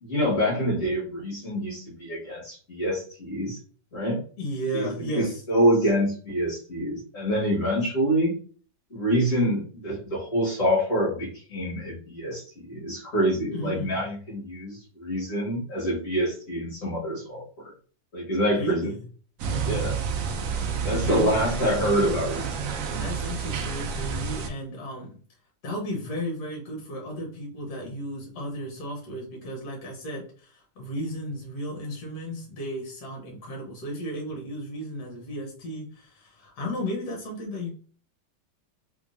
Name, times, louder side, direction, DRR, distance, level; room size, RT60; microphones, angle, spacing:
voice 1, 0.0-3.6 3.9-4.2 4.7-8.3 8.9-17.7 18.1-18.9 19.6-20.0 20.8-22.5, equal, 45° left, -6 dB, 1.8 m, -26 dB
voice 2, 4.4-5.4 13.5-14.0 18.5-19.0 20.8-21.4 22.9-25.2 25.6-37.7, equal, 60° left, -1 dB, 1.5 m, -34 dB
sound 1, 19.4-24.5, right 5 dB, 90° right, 0.7 m, -29 dB
3.6 x 3.1 x 2.5 m, 0.42 s
omnidirectional pair, 2.0 m